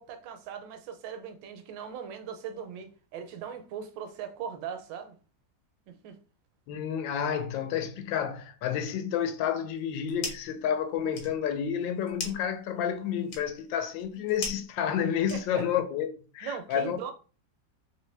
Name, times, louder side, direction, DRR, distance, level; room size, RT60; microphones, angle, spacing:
voice 1, 0.0-5.2 5.9-6.2 15.3-15.6 16.4-17.1, right 8 dB, 80° right, 1.2 m, -39 dB
voice 2, 6.7-17.1, left 8 dB, 80° left, 1.3 m, -30 dB
sound 1, 9.7-10.6 10.9-15.8, left 3 dB, 60° left, 1.2 m, -41 dB
3.2 x 2.8 x 3.2 m
omnidirectional pair, 2.1 m